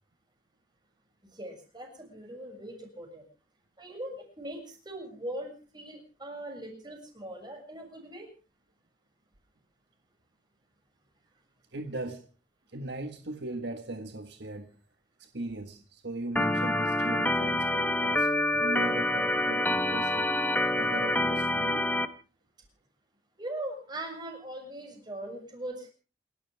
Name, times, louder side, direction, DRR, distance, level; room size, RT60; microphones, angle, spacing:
voice 1, 1.3-3.2 3.8-8.3 23.4-25.9, right 1 dB, 25° right, 7.0 m, -40 dB
voice 2, 11.7-12.3 12.7-14.8 15.2-21.9, right 2 dB, 65° right, 1.7 m, -39 dB
Organ, 16.4-22.1, left 1 dB, 10° left, 1.4 m, -27 dB
28.5 x 13.0 x 3.5 m
head